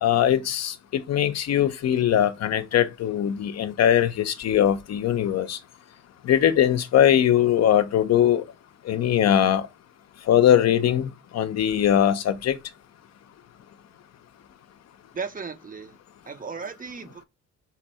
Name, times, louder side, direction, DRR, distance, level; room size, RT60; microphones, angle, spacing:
voice 1, 0.0-5.6 6.2-8.4 8.9-9.7 10.3-12.6, left 10 dB, 60° left, 0.6 m, -21 dB
voice 2, 15.1-16.0 16.3-17.2, right 5 dB, 30° right, 0.6 m, -35 dB
4.1 x 2.6 x 4.2 m
cardioid pair, 90°, 30 cm